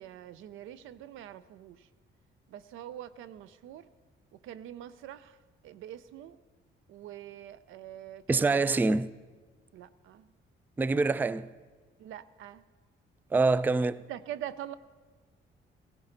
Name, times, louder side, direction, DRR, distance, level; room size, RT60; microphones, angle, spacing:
voice 1, 0.0-1.9 2.5-3.9 4.3-5.4 5.6-6.4 6.9-8.8 9.7-10.3 12.0-12.6 14.1-14.7, right 11 dB, 85° right, 0.5 m, -44 dB
voice 2, 8.3-9.1 10.8-11.5 13.3-14.0, right 3 dB, 10° right, 0.3 m, -25 dB
16.5 x 15.0 x 3.9 m
cardioid pair, 90°, 20 cm